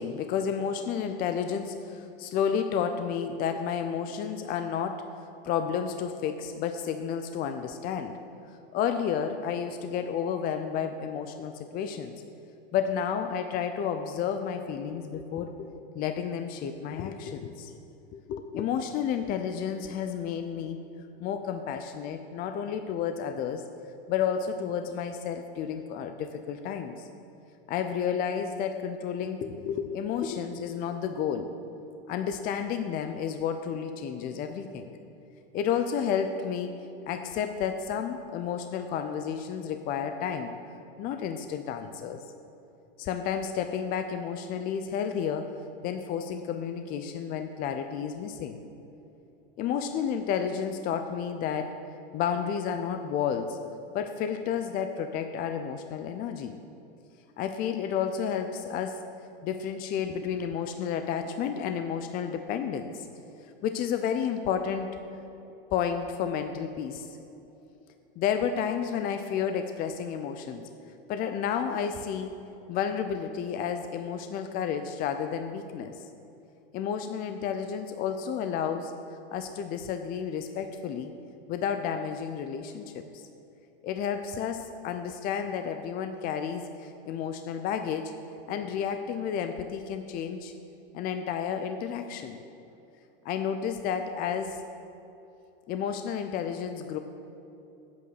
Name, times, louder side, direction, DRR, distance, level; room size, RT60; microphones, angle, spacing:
voice 1, 0.0-5.1 5.4-8.2 8.7-12.1 12.7-17.7 18.1-20.8 21.2-23.6 24.1-27.1 27.7-31.5 32.1-34.9 35.5-36.7 37.1-40.5 41.0-42.2 43.0-45.5 45.8-48.6 49.6-51.8 52.1-53.6 53.9-56.6 57.4-59.0 59.4-63.1 63.6-64.9 65.7-67.2 68.2-70.7 71.1-72.3 72.7-75.9 76.7-78.9 79.3-81.1 81.5-83.2 83.8-90.5 90.9-92.4 93.2-94.6 95.7-97.0, left 7 dB, 30° left, 7 dB, 0.5 m, -31 dB
8.5 x 8.4 x 6.6 m, 2.8 s
hypercardioid pair, 120°, 29 cm